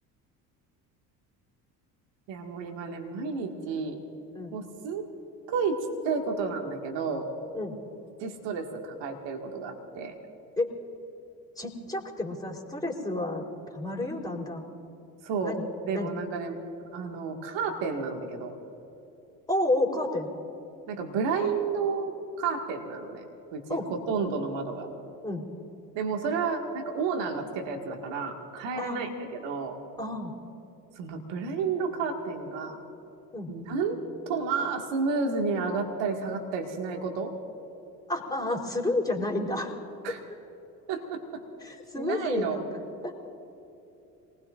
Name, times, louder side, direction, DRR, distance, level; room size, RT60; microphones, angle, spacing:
voice 1, 2.3-4.0 4.5-5.1 5.5-7.3 8.2-10.1 15.2-15.6 15.8-16.6 16.9-18.5 20.9-23.8 24.1-24.9 26.0-29.8 31.0-32.8 33.5-34.0 34.3-37.3 40.0-40.2 40.9-41.4 42.0-42.6, right 5 dB, 65° right, 2 dB, 2.1 m, -31 dB
voice 2, 11.6-13.4 13.7-14.7 15.4-15.7 15.9-16.1 19.5-20.3 23.7-23.9 25.2-25.5 28.8-29.1 30.0-30.3 33.3-33.5 38.1-39.7 41.6-43.1, left 2 dB, 10° left, -1 dB, 3.9 m, -30 dB
27.5 x 20.0 x 2.6 m, 3.0 s
hypercardioid pair, 65°, 47 cm